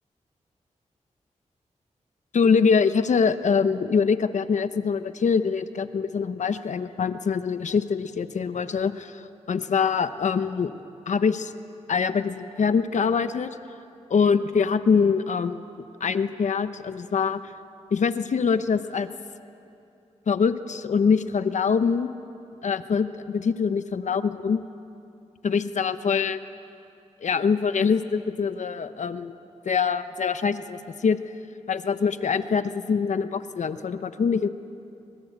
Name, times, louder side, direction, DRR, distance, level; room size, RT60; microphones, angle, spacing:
voice 1, 2.3-9.2 9.5-10.7 11.1-11.5 11.9-13.5 14.1-15.6 16.0-17.4 17.9-19.1 20.3-22.1 22.6-24.6 25.4-26.4 27.2-29.3 29.6-31.2 31.7-34.5, left 5 dB, 75° left, 11 dB, 1.0 m, -24 dB
25.0 x 23.0 x 8.2 m, 2.7 s
wide cardioid pair, 80°, 13 cm